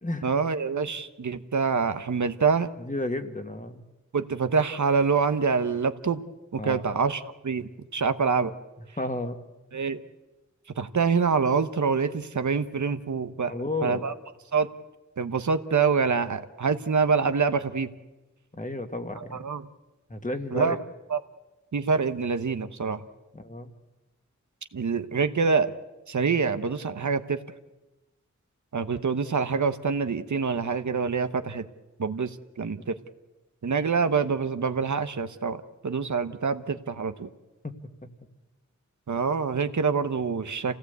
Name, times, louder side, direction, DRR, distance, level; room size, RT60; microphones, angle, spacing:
voice 1, 0.2-2.7 4.1-6.2 6.5-8.5 9.7-10.0 10.8-13.5 13.8-14.1 14.5-14.7 15.2-17.9 19.3-19.6 20.5-20.8 21.1-21.2 21.7-23.0 24.7-25.7 26.1-27.4 28.7-31.7 32.0-33.0 33.6-37.3 39.1-40.8, right 5 dB, 75° right, 10 dB, 1.0 m, -26 dB
voice 2, 2.8-3.8 6.6-6.8 9.0-9.4 13.5-14.0 18.5-19.4 20.1-20.8 23.3-23.7 37.6-37.7, left 2 dB, 25° left, 6 dB, 1.9 m, -32 dB
27.5 x 17.5 x 8.2 m, 1.1 s
wide cardioid pair, 85°, 30 cm